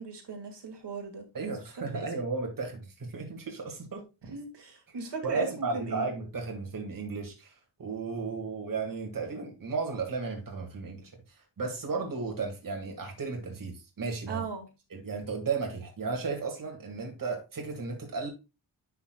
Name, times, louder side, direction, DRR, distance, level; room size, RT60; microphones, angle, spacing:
voice 1, 0.0-1.2 1.9-2.1 4.2-6.1 14.3-14.7, right 4 dB, 60° right, 2.1 m, -37 dB
voice 2, 1.3-4.0 5.2-7.5 7.8-11.1 11.6-14.4 14.9-18.3, right 4 dB, 45° right, 1.9 m, -34 dB
10.5 x 5.8 x 2.2 m
wide cardioid pair, 145°, 47 cm